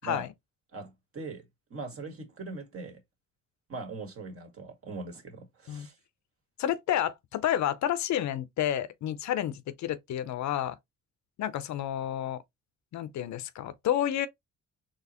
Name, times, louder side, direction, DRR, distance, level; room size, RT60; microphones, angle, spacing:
voice 1, 0.7-1.4 1.7-3.0 3.7-6.0, right 3 dB, 50° right, 1.7 m, -40 dB
voice 2, 6.6-10.8 11.4-12.4 12.9-14.3, left 11 dB, 65° left, 0.7 m, -30 dB
4.1 x 3.1 x 2.9 m
cardioid pair, 90°, 30 cm